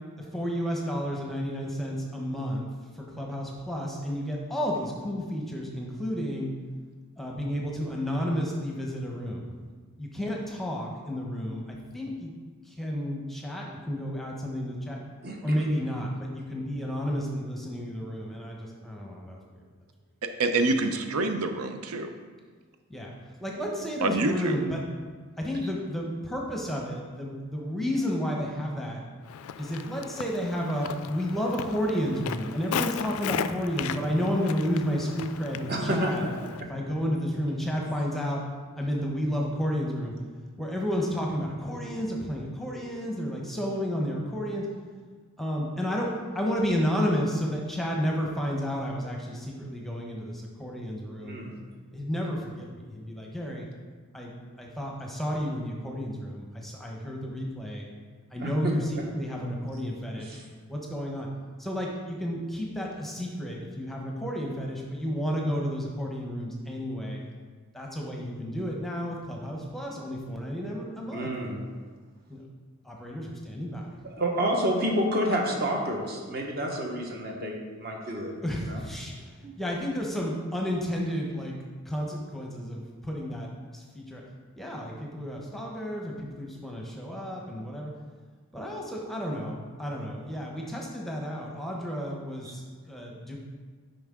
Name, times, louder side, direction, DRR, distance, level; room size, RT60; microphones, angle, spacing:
voice 1, 0.3-2.7 3.0-6.5 7.2-9.5 10.0-12.3 12.6-15.0 15.4-19.6 22.9-23.1 23.4-24.8 25.4-29.0 29.6-36.2 36.6-38.4 38.8-40.1 40.6-44.7 45.4-51.4 51.9-53.7 54.1-54.3 54.6-57.9 58.3-60.4 60.7-61.3 61.6-67.2 67.7-71.3 72.3-72.4 72.8-73.9 78.4-79.1 79.6-81.5 81.9-83.5 83.7-84.2 84.6-87.9 88.5-93.4, equal, ahead, -2 dB, 0.8 m, -31 dB
voice 2, 15.2-15.6 35.7-36.3 51.2-51.5 58.4-58.7 60.3-60.4 71.1-71.6 74.0-78.3 78.6-78.8 79.4-79.5 92.4-92.5, right 1 dB, 45° right, 0 dB, 1.2 m, -29 dB
voice 3, 20.4-22.1 24.0-24.6, right 2 dB, 90° right, 6 dB, 0.6 m, -26 dB
Walk footsteps, 29.2-36.6, left 8 dB, 80° left, 0.3 m, -36 dB
9.4 x 5.3 x 3.7 m, 1.5 s
head